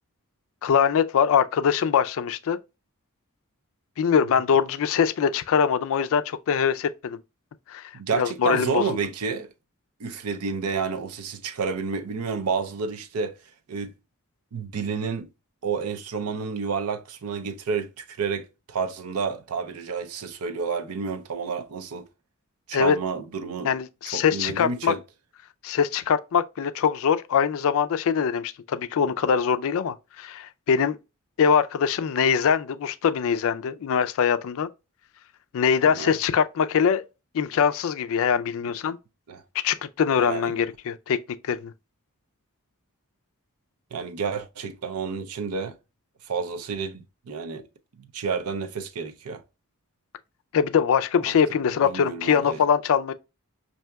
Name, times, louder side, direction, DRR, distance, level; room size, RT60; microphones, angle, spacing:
voice 1, 0.6-2.6 4.0-7.2 7.7-7.8 8.1-9.0 22.7-23.0 23.6-25.0 25.6-31.0 31.4-34.7 35.5-37.0 37.3-39.0 39.6-41.2 41.4-41.7 50.5-53.1, left 7 dB, 65° left, 0.4 m, -23 dB
voice 2, 7.9-9.5 10.0-13.3 13.7-13.9 14.5-15.3 15.6-22.1 22.7-23.7 24.1-25.0 35.8-36.1 39.3-39.4 40.2-40.5 43.9-45.7 46.3-47.6 48.0-49.4 51.3-51.4 51.9-52.6, right 5 dB, 75° right, 0.6 m, -30 dB
5.5 x 2.7 x 2.2 m
head